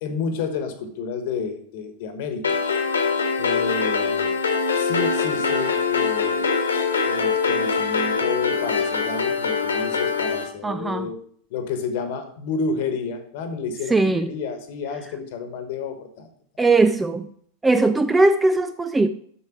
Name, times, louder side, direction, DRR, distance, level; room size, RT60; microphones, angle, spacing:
voice 1, 0.0-2.4 3.4-4.3 4.8-6.5 7.0-11.2 11.5-16.3, left 5 dB, 50° left, 8 dB, 1.3 m, -30 dB
sound 1, 2.4-10.4, left 5 dB, 70° left, 1.4 m, -23 dB
voice 2, 10.6-11.1 13.9-14.3 16.6-17.3 17.6-19.1, right 3 dB, 10° right, 11 dB, 0.4 m, -19 dB
7.2 x 6.4 x 6.2 m, 0.62 s
figure-of-eight pair, 90°, 0 cm